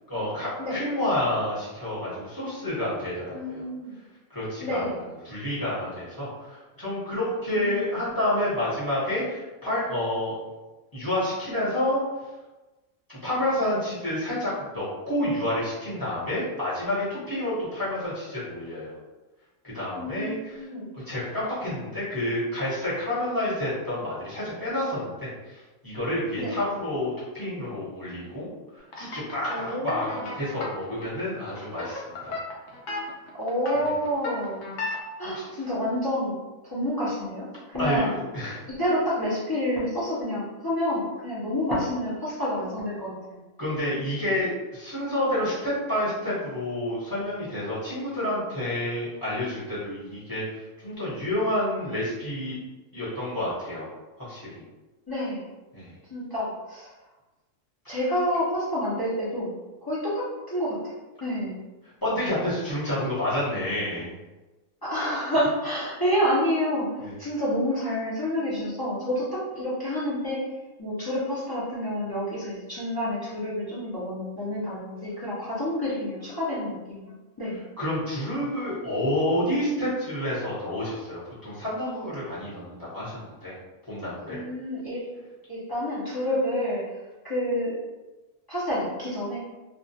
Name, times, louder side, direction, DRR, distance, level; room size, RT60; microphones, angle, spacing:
voice 1, 0.1-3.6 4.3-4.8 5.2-10.3 10.9-12.0 13.1-18.9 19.6-20.7 20.9-28.5 28.7-32.4 35.2-35.4 37.8-38.1 38.3-38.6 43.6-52.6 52.9-53.8 54.2-54.5 55.7-55.9 57.8-58.0 62.0-64.1 67.0-67.1 77.8-83.6 83.9-84.4, left 1 dB, 20° left, -11 dB, 0.9 m, -29 dB
voice 2, 3.3-3.9 4.6-5.0 7.4-7.8 20.0-20.9 26.4-26.5 29.5-30.3 33.3-34.6 35.2-36.4 36.6-38.2 38.7-43.4 55.1-55.4 56.1-56.9 57.9-59.5 59.9-60.8 61.2-61.6 64.8-66.9 67.2-70.4 70.8-77.1 77.4-77.6 84.3-85.0 85.5-87.0 87.2-87.8 88.5-89.4, equal, 35° left, -9 dB, 0.3 m, -28 dB
sound 1, 28.9-35.0, left 3 dB, 70° left, 0.9 m, -34 dB
2.3 x 2.1 x 2.7 m, 1.1 s
omnidirectional pair, 1.4 m